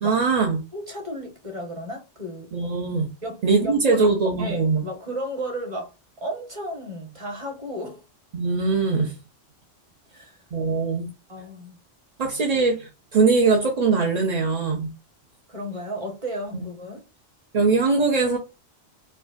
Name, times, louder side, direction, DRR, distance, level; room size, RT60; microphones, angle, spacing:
voice 1, 0.0-0.6 2.5-3.1 3.4-4.8 8.3-9.2 10.5-11.1 12.2-14.9 16.5-16.6 17.5-18.4, right 4 dB, 50° right, 0.5 m, -21 dB
voice 2, 0.7-2.5 3.2-5.9 6.2-8.0 10.1-10.4 11.3-11.8 15.5-17.0, equal, 25° right, 1.1 m, -34 dB
4.4 x 2.3 x 2.5 m
omnidirectional pair, 1.3 m